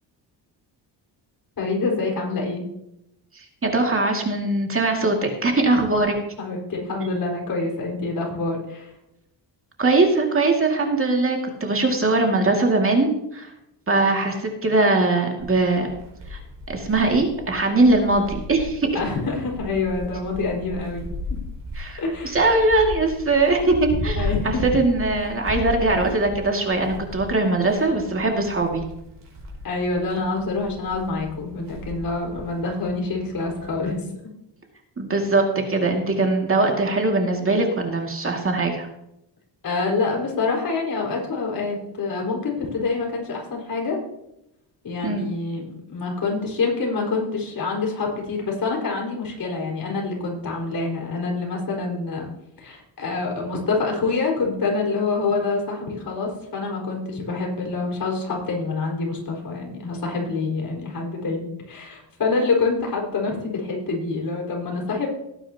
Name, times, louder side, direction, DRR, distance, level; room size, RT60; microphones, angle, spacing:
voice 1, 1.6-2.6 5.7-5.8 6.4-8.9 18.9-21.1 22.0-22.4 24.1-24.6 29.6-34.2 39.6-44.0 44.8-52.3 52.6-65.1, left 3 dB, 50° left, -1 dB, 4.8 m, -26 dB
voice 2, 3.4-6.2 9.8-13.5 13.9-15.9 16.3-16.4 16.7-18.9 21.8-28.8 35.0-38.9 45.0-45.3, right 2 dB, 30° right, 1 dB, 2.2 m, -21 dB
sound 1, 15.4-33.9, left 2 dB, 45° right, 5.3 m, -35 dB
18.5 x 9.6 x 2.9 m, 0.84 s
cardioid pair, 110°, 43 cm